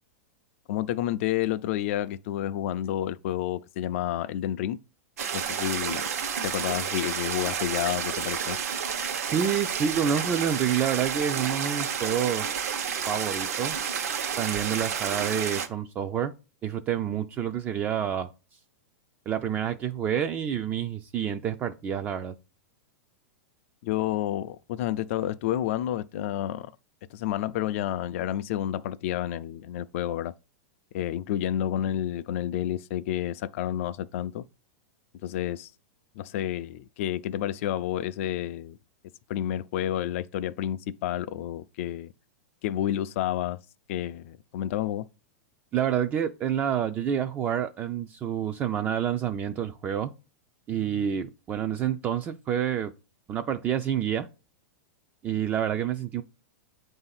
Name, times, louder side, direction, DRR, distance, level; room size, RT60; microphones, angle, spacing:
voice 1, 0.7-4.8 5.3-6.1 6.4-8.6 23.8-26.7 27.1-30.3 30.9-34.4 35.2-35.7 36.2-38.8 39.3-42.1 42.6-43.6 43.9-45.1, left 12 dB, 55° left, 0.3 m, -30 dB
sound 1, 5.2-15.7, right 7 dB, 75° right, 1.0 m, -30 dB
voice 2, 9.3-12.5 13.1-13.8 14.4-16.3 16.6-18.3 19.3-22.3 45.7-50.1 50.7-52.9 53.3-54.3 55.2-56.2, right 9 dB, 20° right, 0.3 m, -28 dB
7.9 x 2.6 x 5.6 m
supercardioid pair, 150°, 8 cm